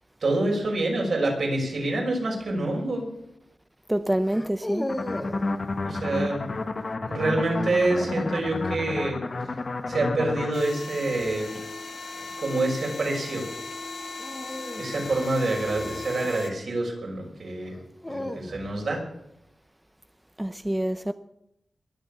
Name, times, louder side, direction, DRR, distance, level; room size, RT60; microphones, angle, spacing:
voice 1, 0.2-3.0 5.8-6.5 7.0-9.2 9.4-9.6 9.9-11.5 12.1-13.5 14.7-17.7 18.1-19.0, right 2 dB, 60° right, 5.9 m, -27 dB
sound 1, 2.4-2.7 4.2-5.5 7.6-8.6 11.0-11.4 14.2-16.6 17.6-18.9, left 1 dB, 15° left, 1.2 m, -37 dB
voice 2, 3.9-4.9 20.4-21.1, right 1 dB, 10° right, 0.6 m, -27 dB
sound 2, 4.9-10.5, left 3 dB, 40° left, 1.3 m, -31 dB
sound 3, 10.5-16.5, left 3 dB, 60° left, 2.2 m, -37 dB
22.0 x 7.7 x 7.1 m
wide cardioid pair, 130°, 0 cm